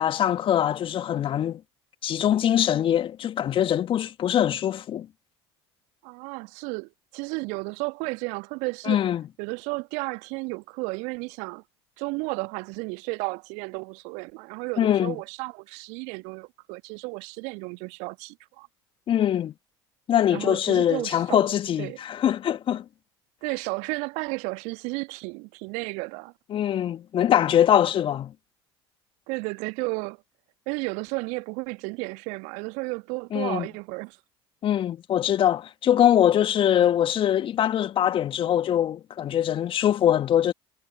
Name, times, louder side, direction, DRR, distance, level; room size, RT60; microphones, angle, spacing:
voice 1, 0.0-1.6 2.0-5.1 8.9-9.2 14.8-15.1 19.1-19.5 20.1-22.8 26.5-28.3 33.3-33.7 34.6-40.5, left 10 dB, 40° left, 1.9 m, -23 dB
voice 2, 6.0-9.0 9.4-11.6 12.0-18.7 20.3-21.5 21.8-22.0 23.4-26.3 29.3-30.2 30.7-34.2, right 29 dB, 60° right, 1.4 m, -33 dB
figure-of-eight pair, 65°, 13 cm